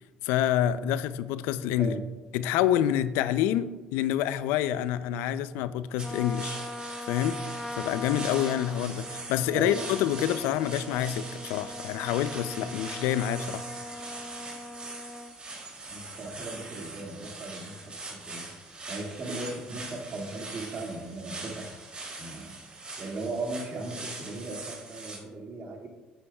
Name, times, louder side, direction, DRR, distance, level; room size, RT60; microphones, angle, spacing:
voice 1, 0.2-1.9 2.3-6.6 7.1-7.4 7.8-13.6, left 11 dB, 85° left, 0.4 m, -27 dB
Trumpet, 6.0-15.3, left 2 dB, 15° left, 0.6 m, -41 dB
sound 1, 6.0-25.2, right 3 dB, 30° right, 2.7 m, -42 dB
voice 2, 15.9-17.8 18.1-18.5 18.9-21.7 22.2-22.6 23.0-25.9, right 2 dB, 50° right, 2.0 m, -37 dB
9.8 x 8.3 x 2.3 m
supercardioid pair, 80°, 3 cm